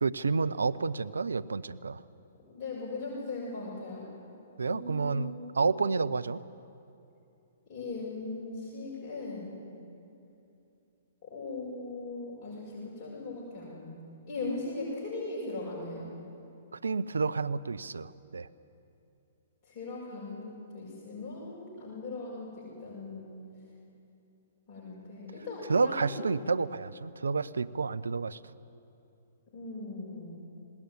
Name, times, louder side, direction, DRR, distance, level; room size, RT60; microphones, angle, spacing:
voice 1, 0.0-2.0 4.6-6.4 16.8-18.5 25.7-28.4, right 4 dB, 80° right, 15 dB, 0.5 m, -30 dB
voice 2, 2.5-4.0 4.7-5.6 7.7-9.6 11.3-13.9 14.3-16.0 19.7-23.4 24.7-26.3 29.5-30.4, left 3 dB, 35° left, -7 dB, 6.8 m, -39 dB
19.5 x 18.0 x 9.6 m, 2.7 s
figure-of-eight pair, 120°, 0 cm